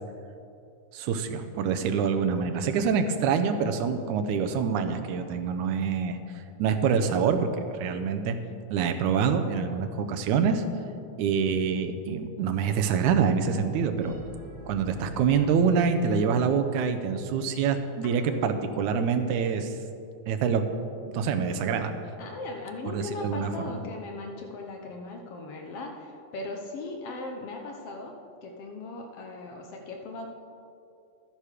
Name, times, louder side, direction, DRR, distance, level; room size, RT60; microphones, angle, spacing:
voice 1, 0.9-6.2 6.6-8.4 8.7-10.6 11.2-14.2 14.7-19.7 20.3-20.7 21.1-21.9 22.9-23.5, right 6 dB, 85° right, 7 dB, 2.2 m, -26 dB
sound 1, 14.0-17.0, right 2 dB, 15° right, 1.8 m, -47 dB
voice 2, 18.2-18.6 22.2-28.1 28.4-30.3, left 2 dB, 65° left, 2 dB, 1.7 m, -38 dB
12.5 x 9.7 x 4.9 m, 2.5 s
omnidirectional pair, 3.3 m